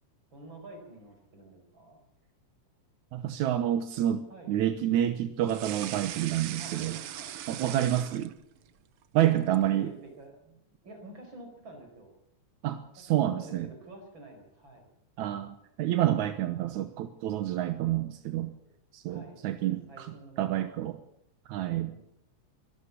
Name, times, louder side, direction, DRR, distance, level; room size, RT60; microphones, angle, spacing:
voice 1, 0.3-2.0 4.3-4.6 6.6-7.3 9.3-10.6 10.8-12.1 13.1-14.9 19.1-20.7 21.7-22.0, right 2 dB, 40° right, 5 dB, 5.6 m, -49 dB
voice 2, 3.1-7.0 7.5-8.3 9.1-9.9 12.6-13.7 15.2-18.5 18.9-21.0 21.5-21.9, right 12 dB, 85° right, 9 dB, 2.5 m, -28 dB
sound 1, 5.4-8.7 9.0-9.7, right 11 dB, 65° right, 1.5 m, -40 dB
24.5 x 12.5 x 8.5 m, 0.74 s
omnidirectional pair, 3.3 m